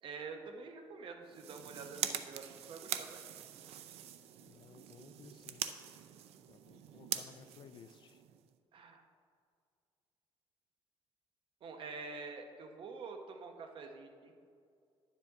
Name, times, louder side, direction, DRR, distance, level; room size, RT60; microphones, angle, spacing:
voice 1, 0.0-3.7 8.7-9.0 11.6-14.3, right 4 dB, 55° right, 4 dB, 0.9 m, -47 dB
sound 1, 1.2-8.5, right 10 dB, 90° right, 0.5 m, -43 dB
voice 2, 4.4-5.6 6.5-8.2, left 8 dB, 50° left, 12 dB, 0.3 m, -58 dB
10.0 x 7.4 x 3.6 m, 2.3 s
cardioid pair, 140°, 10 cm